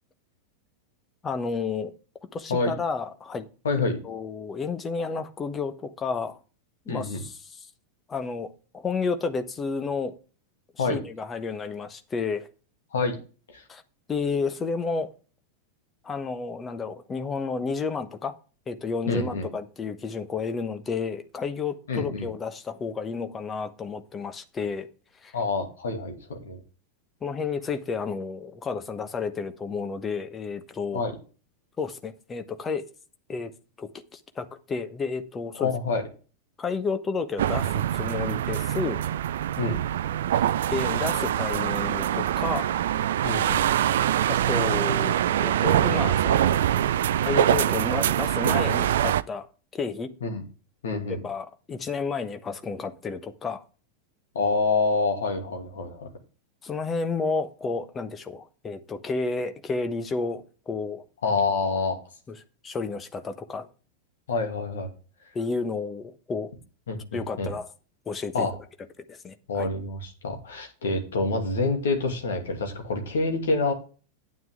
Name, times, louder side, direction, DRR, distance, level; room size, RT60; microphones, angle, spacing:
voice 1, 1.2-1.9 2.3-3.5 4.0-6.4 6.9-7.7 8.1-10.1 10.7-12.5 13.7-13.8 14.1-15.1 16.0-18.3 18.7-24.9 25.2-25.4 27.2-31.0 31.8-32.8 33.3-33.5 33.8-35.7 36.6-39.0 40.4-42.7 44.3-45.2 45.4-46.7 47.2-49.5 49.7-50.1 51.1-53.6 56.6-61.0 62.3-62.4 62.6-63.7 65.3-66.5 67.1-67.7 68.1-68.5 69.1-69.7, left 4 dB, 20° left, 9 dB, 1.1 m, -31 dB
voice 2, 3.6-4.0 6.9-7.2 10.8-11.0 12.9-13.1 13.5-13.6 19.1-19.5 21.9-22.3 25.3-26.6 30.9-31.1 35.6-36.0 39.6-39.8 43.2-43.6 50.2-50.4 50.8-51.2 54.3-56.1 61.2-62.0 64.3-64.9 66.9-67.5 68.3-68.5 69.5-73.7, left 3 dB, 65° left, 3 dB, 2.7 m, -27 dB
sound 1, 37.4-49.2, right 11 dB, 60° right, 0.4 m, -24 dB
9.5 x 9.2 x 3.6 m, 0.36 s
figure-of-eight pair, 90°, 0 cm